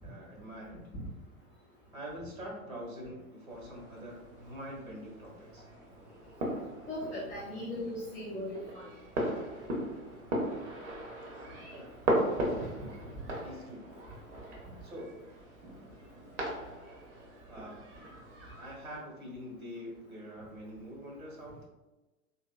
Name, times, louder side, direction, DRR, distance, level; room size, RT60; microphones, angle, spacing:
voice 1, 0.0-0.8 1.9-5.7 11.7-12.0 13.4-13.9 14.8-15.3 17.5-17.9 18.6-21.6, equal, 75° right, -3 dB, 1.4 m, -45 dB
sound 1, 3.5-19.0, right 1 dB, 55° right, 1.0 m, -38 dB
voice 2, 6.9-8.9, left 1 dB, 10° left, -11 dB, 0.3 m, -38 dB
3.8 x 3.0 x 2.2 m, 1.1 s
figure-of-eight pair, 100°, 43 cm